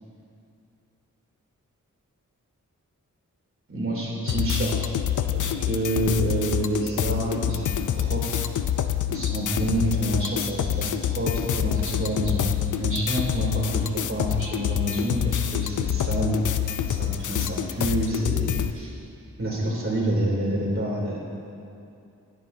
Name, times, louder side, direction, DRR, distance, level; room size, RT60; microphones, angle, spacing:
voice 1, 3.7-4.7 5.3-8.5 9.1-18.9 19.4-21.2, right 1 dB, 45° right, -4 dB, 3.1 m, -28 dB
sound 1, 4.3-18.7, left 10 dB, 70° left, 0.5 m, -27 dB
18.0 x 9.8 x 2.8 m, 2.6 s
cardioid pair, 70°, 31 cm